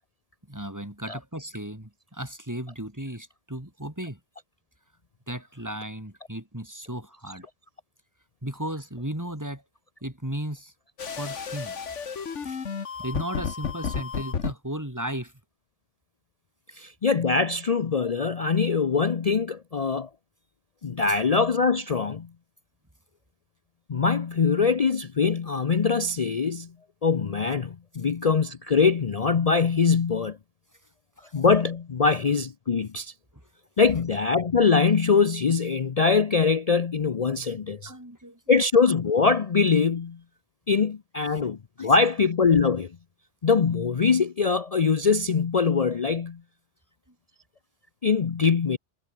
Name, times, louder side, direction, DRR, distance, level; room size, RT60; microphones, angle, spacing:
voice 1, 0.5-4.2 5.3-7.5 8.4-9.6 10.0-10.7 11.2-11.8 12.4-15.3 16.7-16.9 21.1-21.2 31.2-31.3 37.8-38.4 41.8-41.9, right 1 dB, 15° right, 3.7 m, -35 dB
sound 1, 11.0-14.5, left 6 dB, 70° left, 1.8 m, -32 dB
voice 2, 16.8-20.1 20.8-22.3 23.9-26.7 27.0-30.4 31.3-33.1 33.8-37.9 38.5-40.2 40.7-42.9 43.4-46.4 48.0-48.8, left 5 dB, 40° left, 0.6 m, -23 dB
omnidirectional pair, 1.3 m